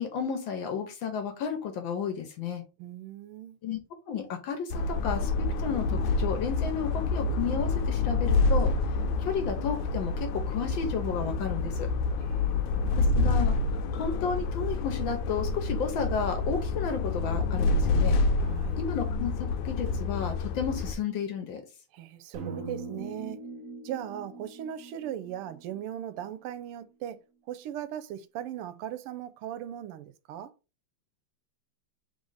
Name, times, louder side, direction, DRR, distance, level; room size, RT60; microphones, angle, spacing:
voice 1, 0.0-2.6 3.6-3.8 4.1-11.9 13.0-13.5 13.9-18.2 18.8-21.6, left 6 dB, 70° left, 1.4 m, -32 dB
voice 2, 2.8-3.6 12.2-13.1 18.4-18.8 21.9-23.4 23.8-27.2 27.5-30.5, right 10 dB, 85° right, 1.5 m, -38 dB
sound 1, 4.7-20.9, left 3 dB, 85° left, 1.5 m, -28 dB
sound 2, 22.3-26.5, right 3 dB, 70° right, 0.7 m, -42 dB
3.9 x 3.1 x 3.8 m
omnidirectional pair, 2.4 m